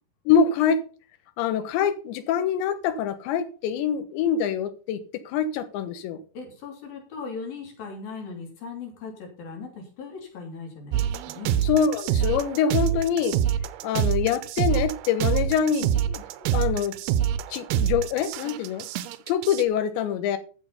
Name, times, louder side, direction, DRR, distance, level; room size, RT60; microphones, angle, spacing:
voice 1, 0.3-0.8 1.4-6.2 11.6-13.4 13.8-17.0 17.5-18.9 19.3-20.4, left 7 dB, 85° left, 3.5 m, -25 dB
voice 2, 6.3-11.6, left 4 dB, 55° left, 4.8 m, -38 dB
sound 1, 10.9-19.6, right 10 dB, 75° right, 2.3 m, -26 dB
14.0 x 7.1 x 5.5 m
omnidirectional pair, 5.0 m